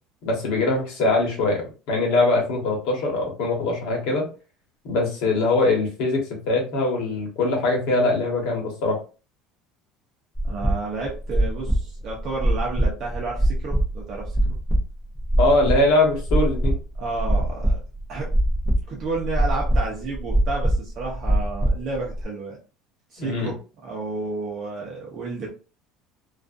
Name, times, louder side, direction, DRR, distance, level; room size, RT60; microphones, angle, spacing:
voice 1, 0.2-1.6 1.9-4.3 4.8-9.0 15.4-16.8 23.2-23.5, left 2 dB, 60° left, 0 dB, 1.1 m, -22 dB
sound 1, 10.3-22.2, right 1 dB, 10° left, 0.6 m, -23 dB
voice 2, 10.4-14.5 17.0-17.8 18.1-18.3 18.9-22.6 23.1-25.5, right 3 dB, 35° right, -2 dB, 0.7 m, -31 dB
2.4 x 2.3 x 2.5 m, 0.34 s
cardioid pair, 175°, 0 cm